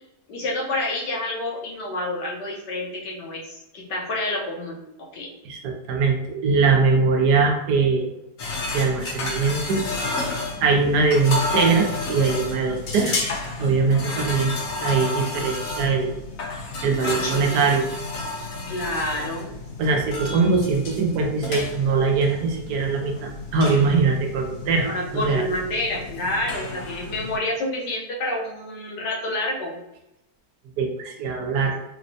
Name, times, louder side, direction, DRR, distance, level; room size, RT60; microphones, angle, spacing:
voice 1, 0.3-5.3 16.9-17.7 18.7-19.5 24.8-29.8, left 1 dB, 80° left, -2 dB, 1.5 m, -29 dB
voice 2, 5.4-8.1 8.7-9.8 10.6-13.2 13.6-14.5 14.8-16.1 16.8-17.9 19.8-25.5 30.8-31.8, right 4 dB, 75° right, 2 dB, 1.1 m, -21 dB
sound 1, 8.4-27.4, left 2 dB, 65° left, 0.9 m, -31 dB
4.8 x 2.1 x 2.7 m, 0.91 s
omnidirectional pair, 1.8 m